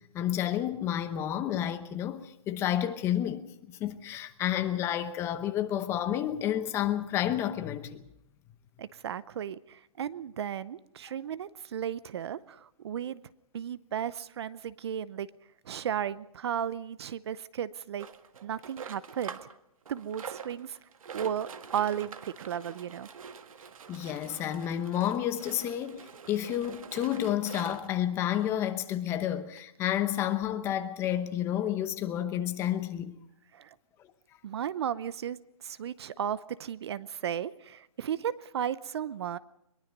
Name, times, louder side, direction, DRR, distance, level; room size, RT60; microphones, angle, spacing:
voice 1, 0.1-8.0 23.9-26.0 26.3-33.2, left 11 dB, 15° left, 0.9 m, -30 dB
voice 2, 8.8-13.2 13.5-15.3 15.6-18.1 18.4-19.4 19.9-20.8 21.1-23.1 33.5-33.8 34.4-35.4 35.6-39.4, right 9 dB, 45° right, 0.7 m, -34 dB
sound 1, 18.0-19.6 19.9-28.0 28.7-28.8 29.0-29.1 29.6-29.7, right 6 dB, 65° right, 1.6 m, -45 dB
22.5 x 22.0 x 5.3 m
hypercardioid pair, 160°, 19 cm